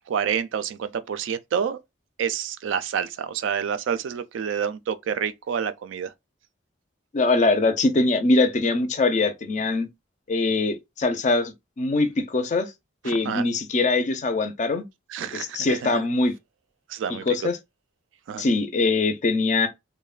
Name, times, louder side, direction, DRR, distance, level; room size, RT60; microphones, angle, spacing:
voice 1, 0.1-1.8 2.2-6.1 13.1-13.4 15.1-15.9 16.9-17.3 18.3-18.5, right 7 dB, 75° right, 0.3 m, -28 dB
voice 2, 7.1-9.9 10.3-12.7 13.0-14.9 15.3-16.3 17.1-17.6 18.4-19.7, left 3 dB, 40° left, 0.4 m, -22 dB
3.1 x 2.1 x 2.3 m
head